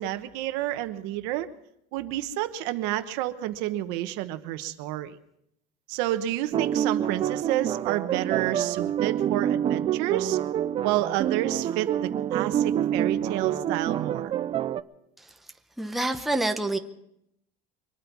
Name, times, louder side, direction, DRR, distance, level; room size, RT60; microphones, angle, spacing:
voice 1, 0.0-1.5 1.9-5.2 5.9-10.4 10.8-14.3, right 14 dB, 75° right, 10 dB, 1.1 m, -29 dB
sound 1, 6.5-14.8, right 10 dB, 30° right, 0.5 m, -27 dB
voice 2, 15.8-16.8, right 2 dB, ahead, 5 dB, 0.8 m, -27 dB
24.0 x 9.3 x 6.0 m, 0.78 s
cardioid pair, 150°, 18 cm